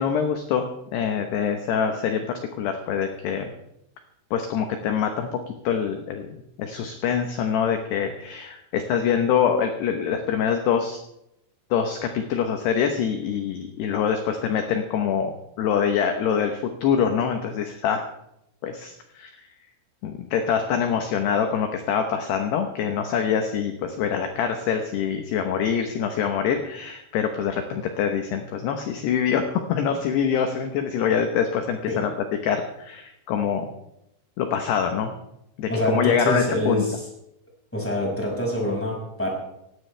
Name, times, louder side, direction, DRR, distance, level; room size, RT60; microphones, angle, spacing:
voice 1, 0.0-2.3 2.6-3.5 4.3-6.3 6.6-11.0 11.7-18.0 18.6-19.3 20.0-32.1 32.4-33.7 34.4-35.1 35.6-36.9, left 7 dB, 70° left, 5 dB, 2.7 m, -25 dB
voice 2, 35.7-37.0 37.7-39.3, equal, 5° left, -2 dB, 5.2 m, -25 dB
17.5 x 17.5 x 3.4 m, 0.82 s
omnidirectional pair, 5.8 m